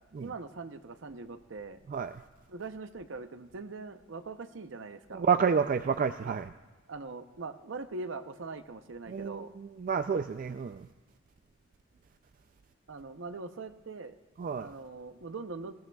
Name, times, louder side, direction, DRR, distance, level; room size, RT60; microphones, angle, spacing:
voice 1, 0.2-1.8 2.5-5.2 6.2-6.3 6.9-9.5 12.9-14.2 14.6-15.7, right 3 dB, 70° right, 10 dB, 0.7 m, -42 dB
voice 2, 5.1-6.5 9.1-10.9 14.4-14.7, right 6 dB, 45° right, 10 dB, 0.3 m, -29 dB
20.0 x 17.5 x 2.3 m, 1.2 s
head